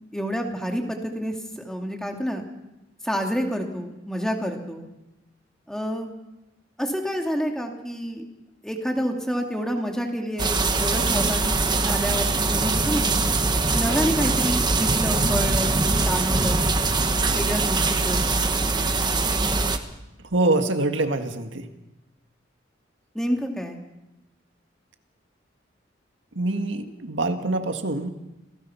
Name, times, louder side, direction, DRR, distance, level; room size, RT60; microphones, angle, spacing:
voice 1, 0.1-2.4 3.0-4.8 5.7-6.1 6.8-8.3 8.6-13.1 13.7-15.7 16.0-16.6 17.3-18.3 23.1-23.8, equal, 5° left, 2 dB, 2.4 m, -28 dB
sound 1, 10.4-19.8, right 3 dB, 25° right, 1.4 m, -22 dB
voice 2, 20.3-21.7 26.4-28.1, right 2 dB, 80° right, 6 dB, 1.8 m, -24 dB
28.0 x 18.0 x 5.8 m, 0.98 s
head